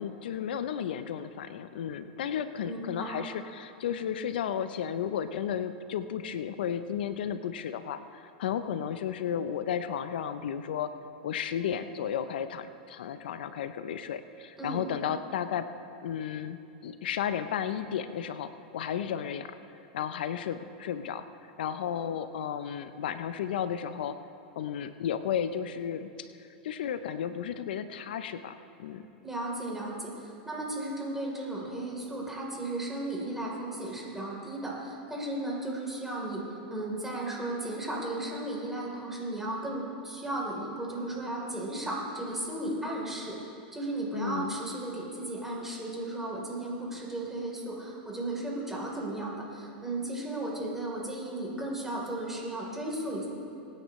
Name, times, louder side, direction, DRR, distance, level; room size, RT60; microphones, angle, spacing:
voice 1, 0.0-11.0 11.2-15.7 16.0-19.5 19.9-24.2 24.6-26.3 26.6-29.0 44.1-44.6, left 8 dB, 80° left, 11 dB, 0.5 m, -33 dB
voice 2, 2.6-3.2 14.6-14.8 29.2-43.4 43.7-53.3, right 1 dB, 5° right, -3 dB, 3.4 m, -35 dB
23.0 x 9.8 x 3.1 m, 2.7 s
hypercardioid pair, 120°, 5 cm